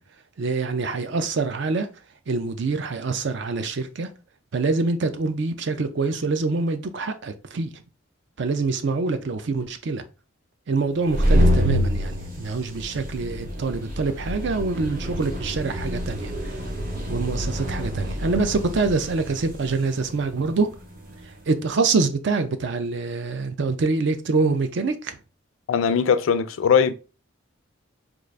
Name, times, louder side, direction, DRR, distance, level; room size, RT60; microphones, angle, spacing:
voice 1, 0.4-1.9 2.3-4.1 4.5-7.8 8.4-10.0 10.7-16.3 17.1-20.7 21.5-25.2, right 4 dB, 60° right, 0.4 m, -25 dB
sound 1, 10.9-21.4, equal, 45° right, 0.9 m, -27 dB
voice 2, 25.7-26.9, left 6 dB, 80° left, 0.4 m, -20 dB
3.7 x 2.4 x 3.1 m
head